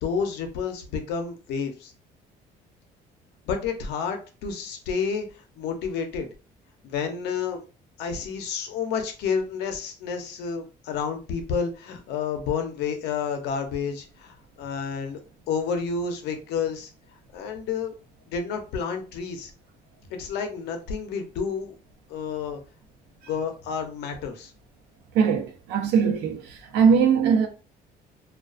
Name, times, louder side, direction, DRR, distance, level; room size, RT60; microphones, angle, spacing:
voice 1, 0.0-1.9 3.5-5.3 5.5-6.3 6.8-7.6 8.0-15.2 15.5-16.9 17.3-18.0 18.3-19.5 20.2-21.8 22.1-22.6 23.3-24.5, left 6 dB, 80° left, 0.6 m, -30 dB
voice 2, 25.1-27.5, right 6 dB, 90° right, 0.6 m, -21 dB
2.3 x 2.3 x 2.4 m
cardioid pair, 110°, 17 cm